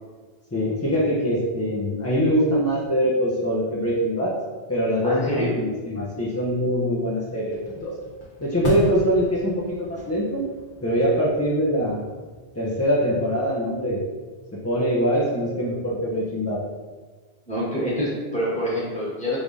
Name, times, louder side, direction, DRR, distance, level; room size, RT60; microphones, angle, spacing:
voice 1, 0.5-4.4 4.7-8.0 8.4-10.5 10.8-12.1 12.5-14.0 14.6-16.6, equal, 20° left, -7 dB, 0.4 m, -23 dB
voice 2, 5.0-5.5 17.5-19.4, equal, 5° left, -8 dB, 1.3 m, -26 dB
sound 1, 7.5-12.8, left 1 dB, 55° left, 1.0 m, -34 dB
4.8 x 3.4 x 2.6 m, 1.4 s
omnidirectional pair, 1.1 m